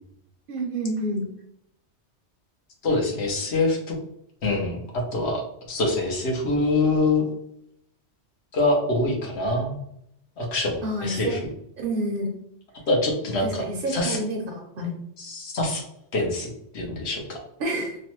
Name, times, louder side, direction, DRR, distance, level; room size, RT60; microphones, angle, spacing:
voice 1, 0.5-1.2 10.8-11.4 11.8-12.3 13.4-14.9 17.6-18.0, right 1 dB, 60° right, 2 dB, 0.7 m, -28 dB
voice 2, 2.8-3.9 4.4-5.4 5.7-7.3 8.5-9.8 10.4-11.5 12.9-14.2 15.2-15.8 16.1-16.5 16.7-17.4, left 2 dB, 70° left, 0 dB, 1.1 m, -25 dB
3.1 x 2.0 x 3.0 m, 0.74 s
omnidirectional pair, 1.2 m